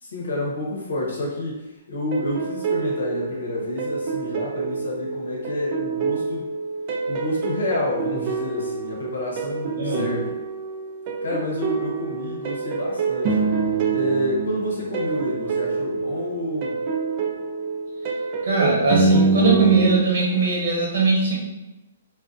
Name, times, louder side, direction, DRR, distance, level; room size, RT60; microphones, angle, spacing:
voice 1, 0.0-6.5 7.1-10.3 11.2-13.4 13.9-16.8, left 1 dB, 90° left, -3 dB, 0.9 m, -29 dB
sound 1, 2.1-20.0, right 4 dB, 35° right, 0.4 m, -26 dB
voice 2, 9.8-10.1 18.4-21.4, right 3 dB, 70° right, -3 dB, 1.0 m, -20 dB
2.6 x 2.1 x 2.5 m, 0.99 s
hypercardioid pair, 150°, 0 cm